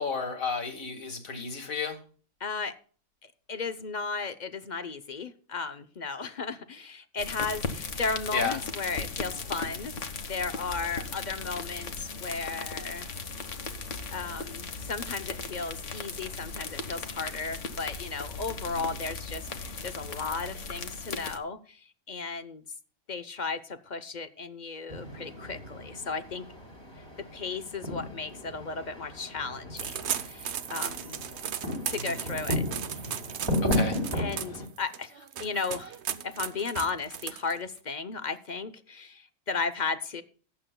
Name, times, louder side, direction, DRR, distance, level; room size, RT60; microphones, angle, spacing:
voice 1, 0.0-2.0 8.3-8.6 18.7-18.9 32.0-32.1 33.7-34.0, left 5 dB, 80° left, 5 dB, 2.4 m, -32 dB
voice 2, 2.4-2.8 3.2-13.1 14.1-22.6 23.1-26.5 27.3-31.2 31.9-32.6 33.0-33.2 34.1-40.2, left 4 dB, 40° left, 12 dB, 0.8 m, -35 dB
sound 1, 7.2-21.4, left 4 dB, 65° left, 1.5 m, -37 dB
sound 2, 24.9-34.7, left 1 dB, 20° right, 2.9 m, -34 dB
sound 3, 29.8-37.8, right 9 dB, 60° right, 1.0 m, -36 dB
18.0 x 8.6 x 2.2 m, 0.41 s
omnidirectional pair, 1.4 m